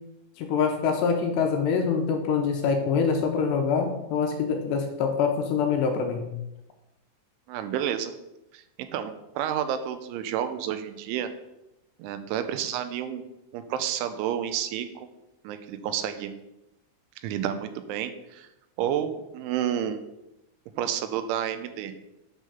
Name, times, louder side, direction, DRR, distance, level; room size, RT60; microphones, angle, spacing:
voice 1, 0.4-6.3, left 6 dB, 80° left, 3 dB, 2.7 m, -25 dB
voice 2, 7.5-8.1 8.5-11.3 12.0-13.2 13.5-15.1 15.4-16.3 17.2-18.5 18.8-20.0 20.8-21.9, right 10 dB, 85° right, 9 dB, 3.1 m, -30 dB
9.2 x 3.8 x 6.8 m, 0.89 s
omnidirectional pair, 5.4 m